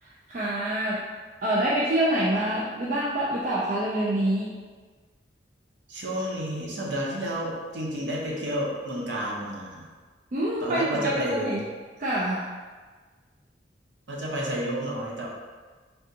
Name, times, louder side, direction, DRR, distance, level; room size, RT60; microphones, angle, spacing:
voice 1, 0.0-1.0 1.4-4.5 10.3-10.9 11.2-11.6 12.0-12.5, right 1 dB, 45° right, -6 dB, 0.4 m, -26 dB
voice 2, 5.9-9.9 10.6-11.6 14.1-15.3, equal, 85° right, -3 dB, 0.7 m, -30 dB
3.4 x 2.5 x 2.7 m, 1.4 s
head